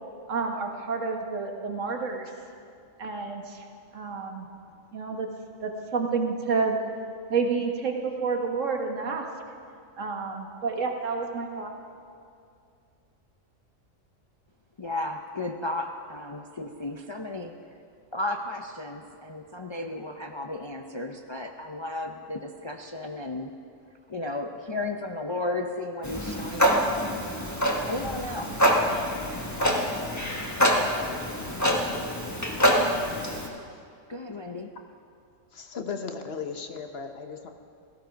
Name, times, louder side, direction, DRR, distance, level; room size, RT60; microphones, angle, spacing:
voice 1, 0.3-2.3 3.0-3.6 3.9-4.5 4.9-5.3 5.6-6.8 7.3-9.3 10.0-11.7, right 4 dB, 75° right, 3 dB, 1.7 m, -29 dB
voice 2, 14.8-17.5 18.1-23.5 24.1-26.9 27.8-28.7 34.1-34.7, left 2 dB, 35° left, 3 dB, 0.5 m, -34 dB
Clock, 26.0-33.5, equal, 15° left, 1.3 m, -25 dB
voice 3, 35.5-37.5, left 5 dB, 55° left, 6 dB, 1.1 m, -36 dB
16.5 x 14.5 x 5.2 m, 2.4 s
omnidirectional pair, 1.3 m